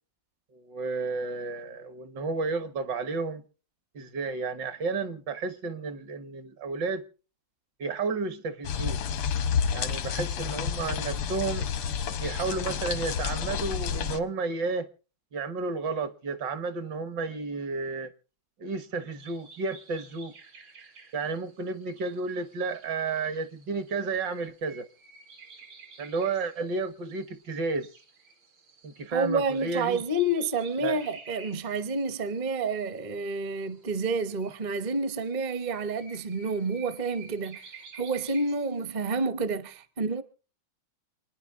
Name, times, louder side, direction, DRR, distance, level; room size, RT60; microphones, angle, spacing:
voice 1, 0.5-3.4 3.9-7.1 7.8-9.0 9.7-11.7 12.2-14.9 15.3-18.1 18.6-20.3 21.1-24.9 26.0-27.9 28.8-30.0 30.8-31.0, right 4 dB, 65° right, 1.9 m, -32 dB
sound 1, 8.6-14.2, left 7 dB, 90° left, 1.8 m, -30 dB
sound 2, 19.2-38.9, right 5 dB, 80° right, 2.9 m, -52 dB
voice 2, 29.1-40.2, right 2 dB, 35° right, 0.7 m, -29 dB
28.5 x 10.0 x 3.6 m
omnidirectional pair, 2.1 m